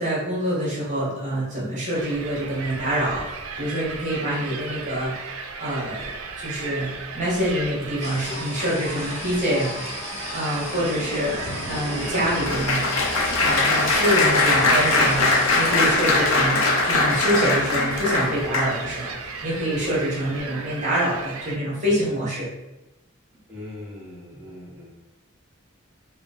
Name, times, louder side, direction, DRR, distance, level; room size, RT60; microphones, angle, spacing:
voice 1, 0.0-9.8 10.3-12.9 13.4-22.5, equal, 35° right, -7 dB, 1.3 m, -26 dB
sound 1, 1.9-21.6, right 4 dB, 85° right, 0.5 m, -36 dB
sound 2, 8.0-16.0, left 2 dB, 35° left, 0.6 m, -36 dB
Applause, 10.7-19.1 19.7-19.9 20.2-20.4, left 3 dB, 70° left, 0.7 m, -22 dB
voice 2, 23.5-24.9, left 1 dB, 10° right, -8 dB, 1.3 m, -40 dB
4.9 x 2.2 x 3.6 m, 1.0 s
head